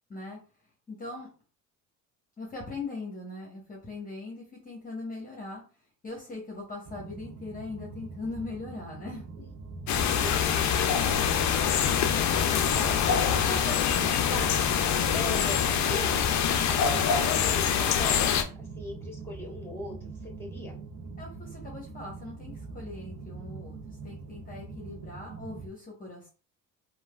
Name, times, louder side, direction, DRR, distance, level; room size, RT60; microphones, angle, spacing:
voice 1, 0.9-1.3 2.4-5.6 6.0-9.2 21.2-26.3, left 3 dB, 20° left, -2 dB, 1.1 m, -40 dB
sound 1, 6.8-25.7, right 4 dB, 40° right, 0.5 m, -43 dB
sound 2, 9.9-18.4, left 8 dB, 50° left, 0.5 m, -25 dB
voice 2, 10.0-10.8 12.3-14.5 15.1-15.6 15.9-20.8, left 1 dB, 5° left, 0 dB, 1.3 m, -39 dB
3.1 x 2.3 x 2.3 m, 0.36 s
supercardioid pair, 70°, 37 cm